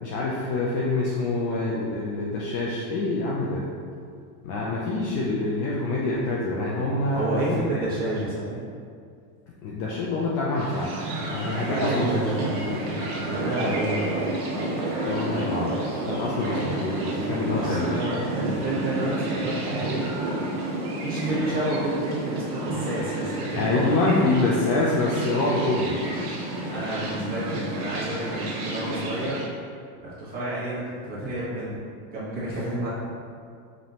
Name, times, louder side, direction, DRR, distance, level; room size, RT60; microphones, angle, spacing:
voice 1, 0.0-3.6 4.4-7.2 7.5-7.7 9.6-10.9 11.2-12.1 15.1-17.9 23.5-26.1, left 2 dB, 40° left, -5 dB, 0.4 m, -26 dB
voice 2, 7.1-8.6 11.7-14.2 17.5-20.0 21.0-23.9 26.7-29.4 30.2-31.8 32.1-32.9, right 1 dB, 20° right, -10 dB, 1.3 m, -30 dB
sound 1, 10.5-29.5, right 1 dB, 85° right, 1.3 m, -30 dB
5.1 x 2.7 x 2.8 m, 2.2 s
supercardioid pair, 155°, 44 cm